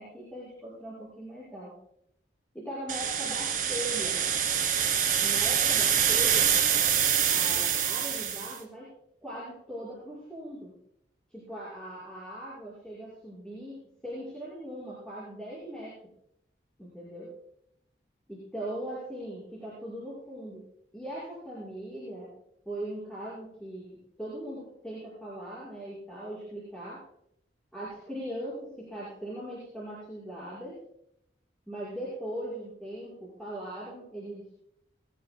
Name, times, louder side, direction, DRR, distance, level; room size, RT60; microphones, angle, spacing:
voice 1, 0.0-1.7 2.5-4.2 5.2-6.6 7.3-8.9 9.2-10.7 11.3-16.0 16.8-17.3 18.3-20.6 20.9-22.3 22.6-27.0 27.7-30.8 31.7-34.5, right 1 dB, 5° left, -8 dB, 6.2 m, -40 dB
sound 1, 2.9-8.6, right 8 dB, 50° right, 2.3 m, -25 dB
21.0 x 18.5 x 2.4 m, 0.74 s
head